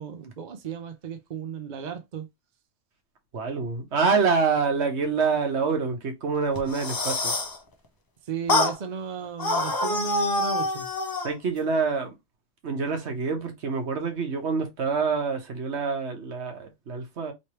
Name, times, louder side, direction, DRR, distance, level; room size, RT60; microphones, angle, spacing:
voice 1, 0.0-2.3 8.3-10.9, right 6 dB, 45° right, 0.6 m, -34 dB
voice 2, 3.3-7.3 11.2-12.1 12.6-17.3, right 5 dB, 60° right, 1.2 m, -26 dB
sound 1, 6.6-7.6 8.5-8.8 9.4-11.3, left 2 dB, 35° left, 0.3 m, -26 dB
3.2 x 3.1 x 2.9 m
omnidirectional pair, 1.3 m